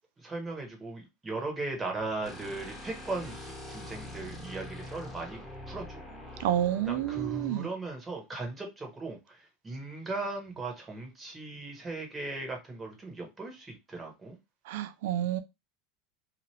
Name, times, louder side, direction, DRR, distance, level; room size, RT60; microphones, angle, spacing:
voice 1, 0.2-3.4 3.7-6.0 6.3-6.4 6.9-14.4, right 3 dB, 20° right, 1.3 m, -38 dB
sound 1, 2.2-7.5, left 1 dB, 15° left, 1.5 m, -44 dB
voice 2, 6.4-7.7 14.7-15.4, right 12 dB, 75° right, 0.4 m, -29 dB
2.8 x 2.5 x 3.2 m
hypercardioid pair, 100°, 0 cm